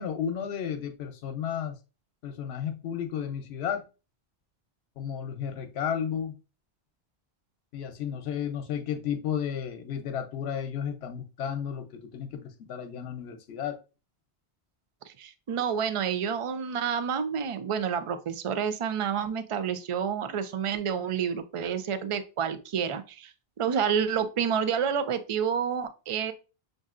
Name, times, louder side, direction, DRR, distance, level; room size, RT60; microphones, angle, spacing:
voice 1, 0.0-1.8 2.2-3.9 5.0-6.3 7.7-13.8, left 8 dB, 80° left, 0.9 m, -33 dB
voice 2, 15.1-26.3, right 7 dB, 55° right, 0.3 m, -29 dB
6.3 x 2.6 x 2.4 m
omnidirectional pair, 1.1 m